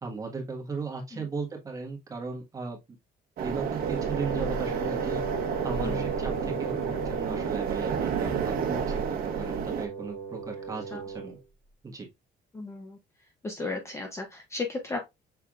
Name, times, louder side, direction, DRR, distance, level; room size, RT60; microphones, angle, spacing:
voice 1, 0.0-2.8 3.4-5.2 5.6-11.4 11.8-12.1, right 4 dB, 20° right, 1.4 m, -36 dB
sound 1, 3.4-9.9, right 7 dB, 55° right, 0.9 m, -31 dB
Wind instrument woodwind instrument, 3.8-11.4, right 4 dB, 35° left, 2.0 m, -36 dB
voice 2, 5.8-6.1 10.9-11.0 12.5-13.0 13.4-15.0, left 3 dB, 15° left, 0.6 m, -35 dB
5.9 x 3.5 x 2.4 m
cardioid pair, 180°, 18 cm